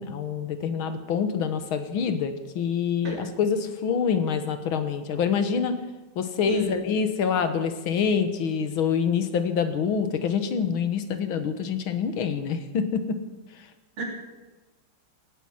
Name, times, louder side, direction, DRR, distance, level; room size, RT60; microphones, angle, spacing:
voice 1, 0.0-5.8 6.2-13.2, left 6 dB, 75° left, 9 dB, 2.1 m, -26 dB
voice 2, 6.5-6.8 14.0-14.1, right 2 dB, 80° right, 0 dB, 4.1 m, -32 dB
18.5 x 9.5 x 7.9 m, 1.1 s
omnidirectional pair, 2.3 m